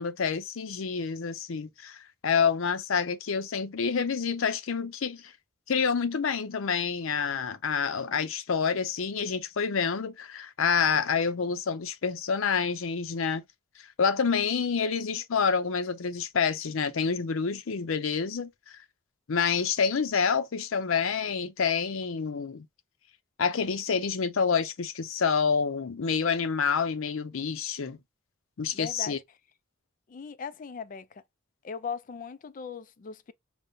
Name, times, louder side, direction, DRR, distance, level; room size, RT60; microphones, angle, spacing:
voice 1, 0.0-5.3 5.7-13.4 13.8-18.8 19.3-22.7 23.4-28.0 28.6-29.2, left 6 dB, 85° left, 0.6 m, -28 dB
voice 2, 28.7-29.2 30.1-31.2 31.6-33.3, left 6 dB, 40° left, 0.3 m, -38 dB
5.2 x 2.1 x 2.6 m
head